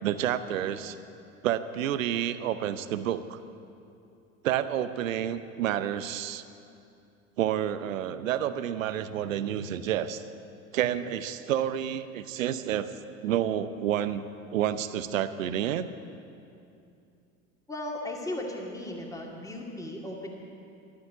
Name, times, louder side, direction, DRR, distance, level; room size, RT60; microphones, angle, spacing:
voice 1, 0.0-1.0 1.4-3.4 4.4-6.4 7.4-10.2 10.7-12.9 13.2-14.2 14.5-15.9, right 10 dB, 65° right, 13 dB, 0.9 m, -29 dB
voice 2, 17.7-20.3, left 1 dB, 10° left, 0 dB, 2.3 m, -36 dB
13.5 x 12.5 x 8.0 m, 2.6 s
figure-of-eight pair, 75°, 43 cm